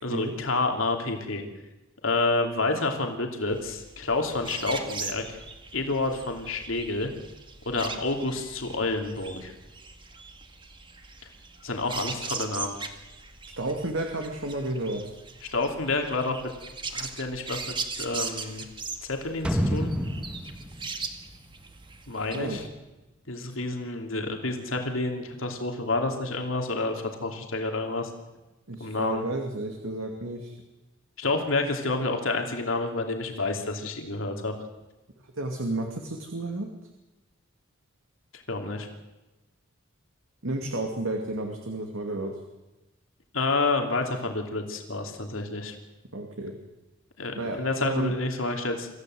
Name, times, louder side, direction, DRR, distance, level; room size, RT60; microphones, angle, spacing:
voice 1, 0.0-1.4 2.0-5.4 5.7-7.1 7.6-9.5 11.6-12.7 15.5-16.5 16.9-18.6 19.1-19.9 22.1-22.6 23.3-28.1 28.8-29.2 31.2-34.5 38.5-38.9 43.3-45.7 47.2-48.9, left 2 dB, 75° left, 3 dB, 3.0 m, -29 dB
sound 1, 3.5-22.7, right 4 dB, 25° right, 2.0 m, -40 dB
voice 2, 13.6-15.2 22.3-22.6 28.7-30.5 35.3-36.7 40.4-42.3 46.1-46.5 47.4-48.1, right 2 dB, 75° right, 3 dB, 2.5 m, -31 dB
sound 2, 19.4-22.3 22.6-22.7, equal, 5° right, 1.7 m, -30 dB
26.0 x 15.5 x 7.9 m, 1.1 s
head